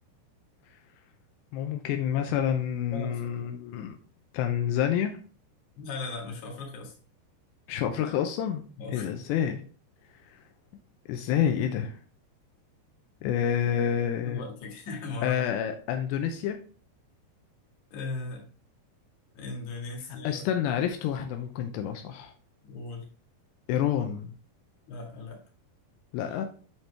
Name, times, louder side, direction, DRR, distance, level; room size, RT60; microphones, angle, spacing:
voice 1, 1.5-4.0 4.3-5.2 7.7-8.7 8.9-9.6 10.3-10.4 11.1-12.0 13.2-14.4 15.2-16.6 20.2-22.3 23.7-24.3 26.1-26.5, left 9 dB, 85° left, 6 dB, 2.8 m, -28 dB
voice 2, 2.9-3.5 5.8-6.9 8.8-9.1 14.3-15.7 17.9-18.4 19.3-20.5 22.6-23.1 24.9-25.4, left 3 dB, 50° left, 0 dB, 3.0 m, -38 dB
11.0 x 4.4 x 3.4 m, 0.40 s
omnidirectional pair, 4.9 m